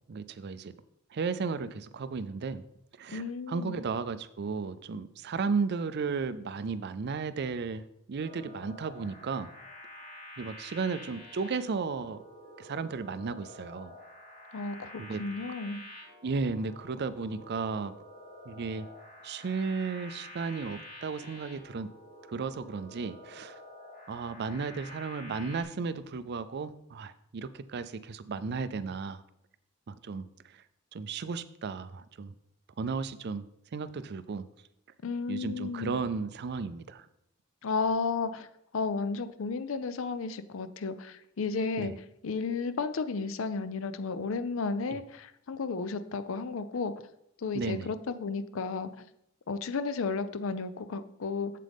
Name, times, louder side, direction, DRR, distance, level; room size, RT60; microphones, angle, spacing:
voice 1, 0.1-0.7 1.1-2.6 3.0-9.5 10.4-12.2 12.6-13.9 15.0-15.2 16.2-18.0 18.5-18.9 19.2-21.9 22.3-23.6 24.1-29.2 29.9-30.2 30.9-32.3 32.8-34.5 35.3-37.0 41.8-42.0 44.9-45.0 47.5-47.9, right 4 dB, 55° right, 14 dB, 0.4 m, -34 dB
voice 2, 3.1-3.8 14.5-15.8 35.0-36.0 37.6-38.5 38.7-41.9 42.2-46.9 47.4-49.0 49.5-51.5, left 4 dB, 70° left, 12 dB, 0.5 m, -33 dB
sound 1, 8.2-25.6, left 1 dB, 35° left, 3.1 m, -49 dB
7.5 x 7.5 x 3.5 m, 0.79 s
head